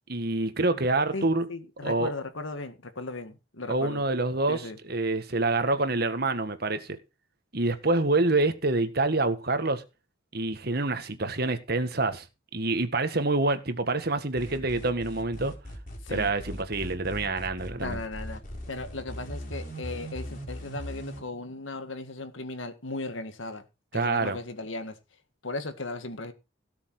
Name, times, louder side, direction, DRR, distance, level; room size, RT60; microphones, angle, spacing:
voice 1, 0.1-1.5 1.8-2.1 3.7-7.0 7.5-9.8 10.3-12.2 12.5-15.5 16.1-18.0 23.9-24.4, right 2 dB, 55° right, 1.7 m, -27 dB
voice 2, 1.1-4.0 4.5-4.8 16.1-16.3 17.8-18.4 18.7-23.6 23.9-24.9 25.4-26.3, left 2 dB, 80° left, 2.0 m, -37 dB
sound 1, 14.4-21.2, equal, 45° left, 4.2 m, -39 dB
17.5 x 7.1 x 4.9 m
head